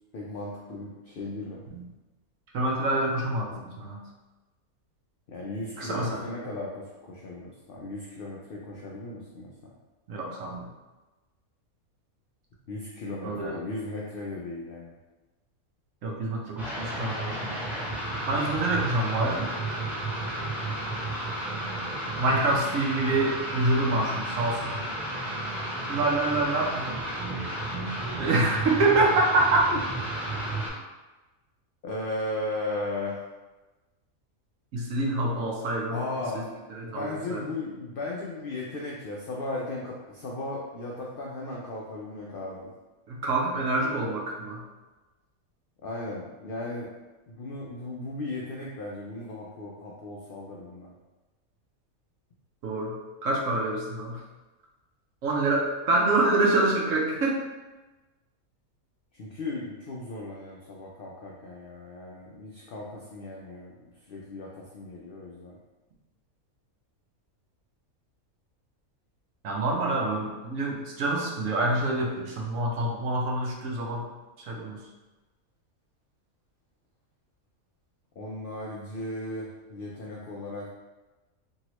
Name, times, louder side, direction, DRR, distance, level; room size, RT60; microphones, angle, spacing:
voice 1, 0.1-1.6 5.3-9.7 12.7-14.9 31.8-33.2 35.9-36.5 36.8-42.7 45.8-46.9 47.3-50.9 59.1-65.6 78.2-80.7, left 2 dB, 85° left, -3 dB, 0.5 m, -36 dB
voice 2, 2.5-4.0 5.8-6.2 10.1-10.7 13.2-13.6 16.0-17.5 18.3-19.5 22.2-24.8 25.9-27.0 28.2-29.7 34.7-36.0 36.3-36.4 36.7-37.4 43.1-44.6 52.6-52.9 53.2-54.2 55.2-57.4 69.4-74.1 74.5-74.8, right 2 dB, 70° right, -2 dB, 1.0 m, -26 dB
sound 1, 16.6-30.7, right 1 dB, ahead, 0.6 m, -32 dB
3.0 x 2.7 x 2.9 m, 1.1 s
omnidirectional pair, 1.5 m